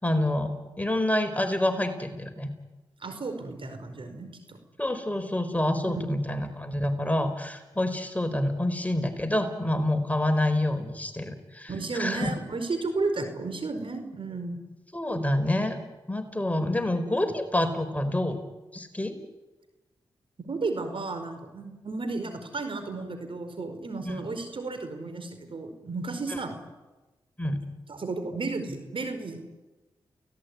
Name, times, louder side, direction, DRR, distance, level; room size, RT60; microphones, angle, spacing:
voice 1, 0.0-2.5 4.8-12.3 14.9-15.8 16.1-18.4 18.7-19.2 24.0-24.2 26.3-26.4 27.4-27.6, left 1 dB, 15° left, 7 dB, 4.6 m, -27 dB
voice 2, 3.0-4.6 5.8-6.1 11.7-14.6 20.5-26.6 27.9-29.4, right 3 dB, 60° right, 8 dB, 4.9 m, -33 dB
29.5 x 18.0 x 9.7 m, 1.1 s
supercardioid pair, 40°, 10 cm